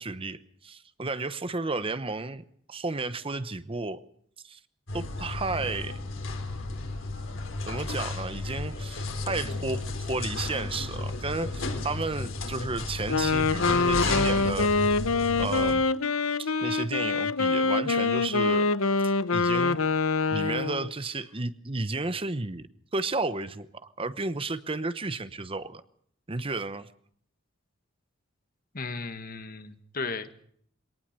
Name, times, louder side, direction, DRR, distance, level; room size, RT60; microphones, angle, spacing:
voice 1, 0.0-2.4 2.7-4.0 4.4-4.6 4.9-6.0 7.7-14.7 15.4-15.8 16.4-18.7 19.3-19.8 20.3-22.7 22.9-25.8 26.3-26.9, right 3 dB, 25° right, 13 dB, 0.9 m, -32 dB
sound 1, 4.9-15.7, left 3 dB, 65° left, 4.0 m, -33 dB
Wind instrument woodwind instrument, 13.0-20.9, left 4 dB, 80° left, 1.0 m, -25 dB
voice 2, 28.7-30.4, left 4 dB, 45° left, 10 dB, 1.7 m, -36 dB
23.0 x 18.5 x 6.8 m, 0.63 s
head